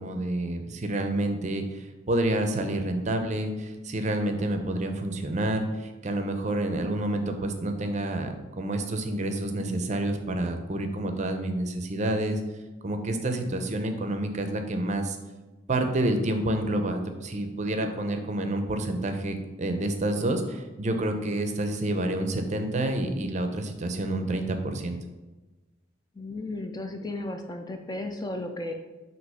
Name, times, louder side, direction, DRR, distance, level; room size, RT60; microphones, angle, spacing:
voice 1, 0.0-12.4 12.8-15.2 15.7-25.0, right 1 dB, 35° right, 6 dB, 0.6 m, -28 dB
voice 2, 26.2-28.7, left 2 dB, 20° left, 4 dB, 0.4 m, -34 dB
6.2 x 2.9 x 5.5 m, 1.1 s
head